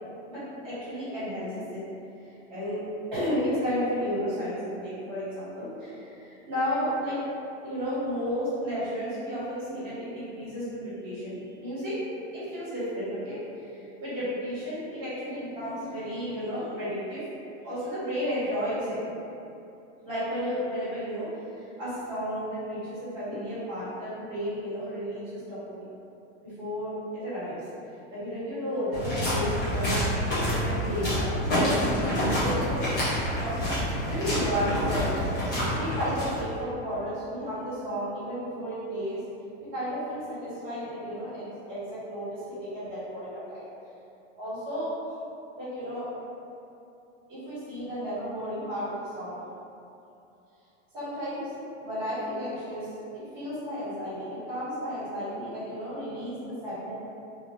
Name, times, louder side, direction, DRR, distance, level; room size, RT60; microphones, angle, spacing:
voice 1, 0.3-1.8 2.5-2.8 3.1-7.1 7.6-11.9 12.3-17.2 17.6-19.0 20.0-21.3 21.6-25.8 26.4-26.9 27.2-27.7 28.1-30.1 30.6-33.0 33.2-35.2 35.8-39.2 39.7-43.6 44.4-44.9 45.6-46.0 47.3-49.3 50.9-51.5 51.8-52.9 53.3-56.9, equal, 15° right, -13 dB, 1.4 m, -33 dB
sound 1, 28.9-36.6, equal, 20° left, 0.3 m, -27 dB
2.5 x 2.5 x 3.1 m, 2.7 s
supercardioid pair, 165°, 37 cm